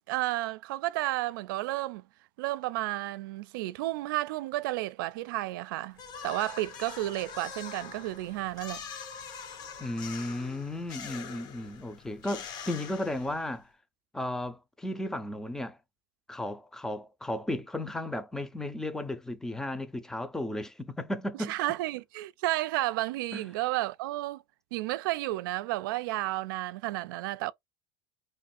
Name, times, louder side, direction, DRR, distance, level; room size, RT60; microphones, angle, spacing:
voice 1, 0.1-2.0 2.4-8.8 21.5-24.4 24.7-27.5, right 17 dB, 80° right, 0.4 m, -32 dB
sound 1, 6.0-13.6, left 6 dB, 40° left, 0.8 m, -44 dB
voice 2, 9.8-13.7 14.1-15.8 16.3-21.5 23.3-23.4, left 1 dB, 5° left, 0.5 m, -34 dB
3.1 x 2.4 x 4.2 m
supercardioid pair, 135°, 11 cm